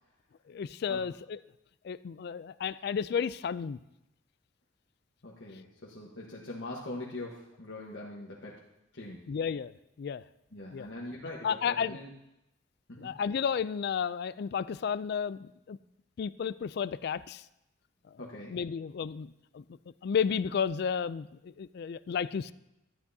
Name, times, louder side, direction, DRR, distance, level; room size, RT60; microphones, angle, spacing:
voice 1, 0.5-1.4 1.8-3.8 9.3-9.7 10.0-10.2 10.7-10.9 11.4-12.0 13.0-15.8 16.2-17.4 18.1-18.2 18.5-19.6 20.0-22.5, left 7 dB, 55° left, 17 dB, 0.3 m, -32 dB
voice 2, 5.2-8.7 8.9-9.3 10.5-12.1 12.9-13.1 18.2-18.5, left 2 dB, 75° left, -4 dB, 1.3 m, -42 dB
12.0 x 10.5 x 2.7 m, 0.87 s
head